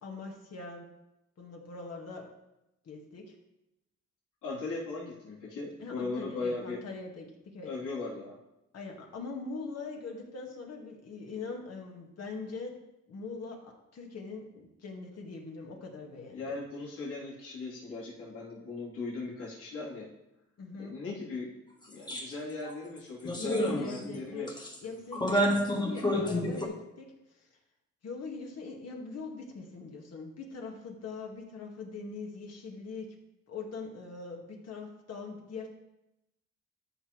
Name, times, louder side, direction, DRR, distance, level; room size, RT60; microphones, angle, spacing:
voice 1, 0.0-0.9 1.4-2.3 2.8-3.4 5.8-7.7 8.7-12.8 13.1-16.5 20.6-21.0 23.4-24.5 24.8-27.5 28.0-33.1 33.5-35.7, left 4 dB, 55° left, 1 dB, 2.0 m, -42 dB
voice 2, 4.4-6.8 7.6-8.4 16.3-20.1 20.8-21.5 21.9-24.5, left 3 dB, 80° left, -8 dB, 3.8 m, -38 dB
sound 1, 22.1-22.3 22.6-22.7 23.2-24.2 24.5-24.8 25.1-26.7, equal, 15° left, 1.6 m, -29 dB
13.0 x 6.2 x 3.3 m, 0.90 s
cardioid pair, 90°, 30 cm